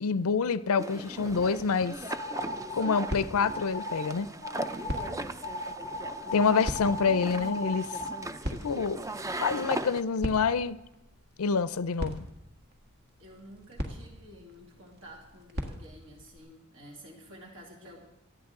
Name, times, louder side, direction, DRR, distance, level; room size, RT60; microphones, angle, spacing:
voice 1, 0.0-2.0 2.7-4.3 6.3-7.9 8.6-9.0 9.4-10.8 11.4-12.2, left 5 dB, 85° left, 15 dB, 0.5 m, -27 dB
sound 1, 0.8-10.0, right 2 dB, 15° right, 0.4 m, -38 dB
sound 2, 1.9-16.4, equal, 50° right, 1.5 m, -42 dB
sound 3, 2.1-3.0 3.4-4.1 4.4-5.1 5.4-8.1, left 2 dB, 80° right, 2.3 m, -36 dB
voice 2, 4.8-5.6 13.2-18.1, equal, 65° right, 0 dB, 2.5 m, -51 dB
19.5 x 14.0 x 3.7 m, 0.95 s
head